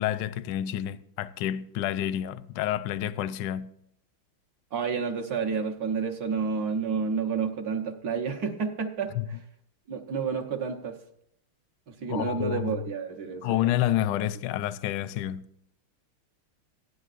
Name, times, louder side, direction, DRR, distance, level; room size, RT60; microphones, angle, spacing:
voice 1, 0.0-3.7 9.2-9.3 12.1-12.8 13.4-15.4, left 12 dB, 75° left, 1.0 m, -29 dB
voice 2, 4.7-9.4 9.9-11.0 11.9-13.6, right 5 dB, 55° right, 1.2 m, -30 dB
16.0 x 11.0 x 2.5 m
omnidirectional pair, 2.4 m